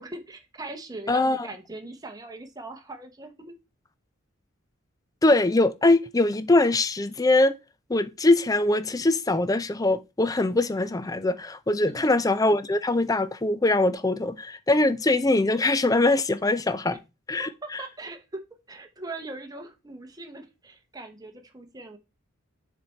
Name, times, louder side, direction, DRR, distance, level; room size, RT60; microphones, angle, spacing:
voice 1, 0.0-3.5 11.9-12.2 16.9-17.0 17.4-18.4 18.7-22.0, right 2 dB, 20° right, 1.0 m, -40 dB
voice 2, 1.1-1.5 5.2-7.5 7.9-17.0 17.3-17.5, left 2 dB, 15° left, 0.4 m, -22 dB
6.7 x 4.2 x 4.4 m
head